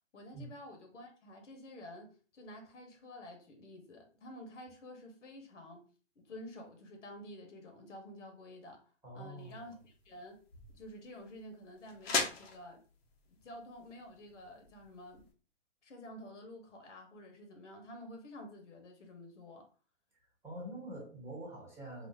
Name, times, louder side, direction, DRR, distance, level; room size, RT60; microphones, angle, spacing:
voice 1, 0.1-5.9 6.1-8.8 9.1-10.4 10.7-12.8 13.3-15.3 15.8-19.7, left 1 dB, 80° left, 1.3 m, -50 dB
voice 2, 9.0-9.7 20.4-22.1, right 1 dB, 10° right, 1.0 m, -45 dB
sound 1, 9.4-15.3, left 4 dB, 60° left, 1.0 m, -41 dB
4.1 x 2.7 x 2.7 m
hypercardioid pair, 140°, 36 cm